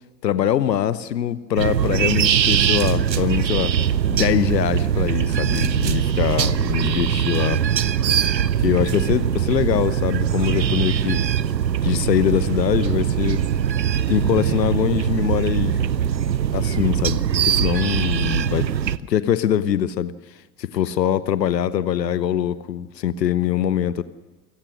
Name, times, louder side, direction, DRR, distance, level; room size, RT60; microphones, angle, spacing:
voice 1, 0.2-3.7 4.1-7.6 8.4-11.2 11.8-13.4 14.1-15.8 16.5-18.7 19.1-20.1 20.6-24.0, left 10 dB, 80° left, 16 dB, 0.9 m, -23 dB
sound 1, 1.6-19.0, right 9 dB, 90° right, 0.7 m, -21 dB
28.5 x 17.5 x 6.3 m, 1.3 s
figure-of-eight pair, 65°, 49 cm